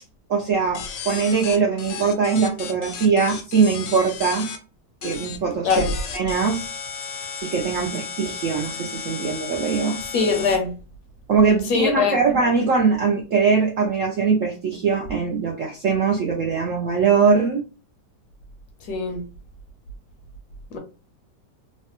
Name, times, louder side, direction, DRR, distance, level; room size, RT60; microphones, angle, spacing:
voice 1, 0.3-4.5 5.0-5.8 6.1-6.7 7.4-10.0 11.3-17.6, right 5 dB, 70° right, 0.7 m, -21 dB
sound 1, 0.7-4.6 5.0-5.4 5.7-10.6, left 6 dB, 85° left, 1.3 m, -34 dB
voice 2, 10.1-10.7 11.7-12.2 18.9-19.2 20.7-20.8, left 5 dB, 70° left, 1.1 m, -21 dB
3.2 x 2.1 x 2.8 m
omnidirectional pair, 1.9 m